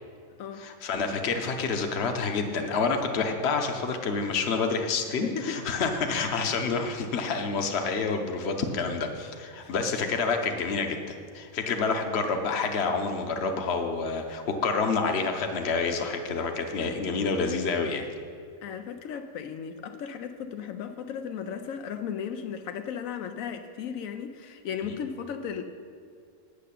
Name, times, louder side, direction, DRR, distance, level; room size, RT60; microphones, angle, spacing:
voice 1, 0.6-18.1 24.8-25.0, left 4 dB, 55° left, 5 dB, 1.1 m, -28 dB
voice 2, 5.1-5.6 9.6-9.7 18.6-25.6, left 7 dB, 85° left, 7 dB, 1.0 m, -36 dB
8.4 x 6.6 x 8.4 m, 2.3 s
omnidirectional pair, 1.4 m